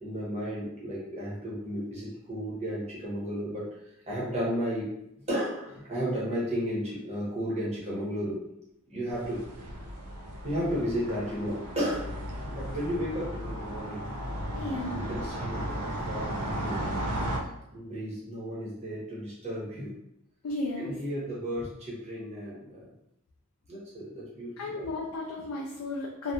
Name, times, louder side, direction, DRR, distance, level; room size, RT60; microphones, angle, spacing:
voice 1, 0.0-3.7 4.1-5.0 5.3-8.4 8.9-9.4 10.4-12.2 12.5-14.1 14.9-17.0 17.7-20.0 20.8-22.9 23.7-24.8, equal, 30° right, -7 dB, 0.9 m, -33 dB
sound 1, 9.1-17.4, right 1 dB, 80° right, 0.4 m, -35 dB
voice 2, 14.5-15.1 20.4-20.9 24.6-26.3, left 2 dB, 80° left, -2 dB, 0.4 m, -34 dB
2.6 x 2.3 x 2.3 m, 0.81 s
head